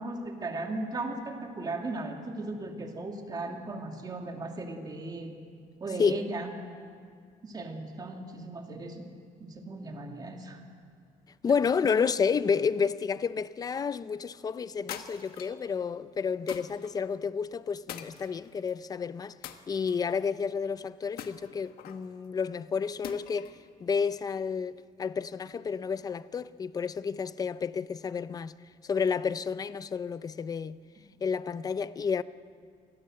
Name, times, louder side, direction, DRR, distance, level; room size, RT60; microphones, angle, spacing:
voice 1, 0.0-5.3 5.8-6.5 7.4-9.1 9.4-10.6, right 2 dB, 25° right, 2.3 m, -37 dB
voice 2, 11.4-19.3 19.7-23.6 23.8-28.5 28.8-30.8 31.2-32.2, left 6 dB, 25° left, 0.5 m, -30 dB
sound 1, 14.9-15.6 16.5-16.9 17.9-18.7 19.4-20.2 21.2-22.1 23.0-23.6, left 10 dB, 90° left, 1.4 m, -43 dB
26.0 x 19.5 x 7.7 m
cardioid pair, 160°, 15 cm